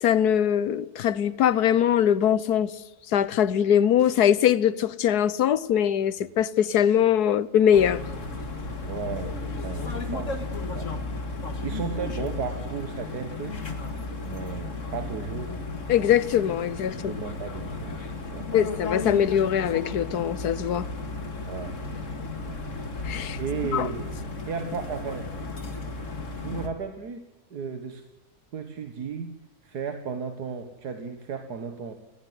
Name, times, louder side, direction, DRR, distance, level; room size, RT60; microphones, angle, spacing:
voice 1, 0.0-2.7 3.1-8.0 15.9-17.2 18.5-20.9 23.0-23.4 23.7-23.9, left 9 dB, 80° left, 1.5 m, -22 dB
sound 1, 7.7-26.7, left 3 dB, 50° left, 2.4 m, -34 dB
voice 2, 8.9-9.3 9.6-10.3 10.6-10.9 11.6-16.0 16.9-18.6 21.4-21.8 22.5-22.6 23.4-24.1 24.5-25.3 26.4-27.2 27.5-28.0 28.5-29.4 29.6-31.9, right 5 dB, 85° right, 2.1 m, -35 dB
19.0 x 17.5 x 9.6 m
omnidirectional pair, 1.6 m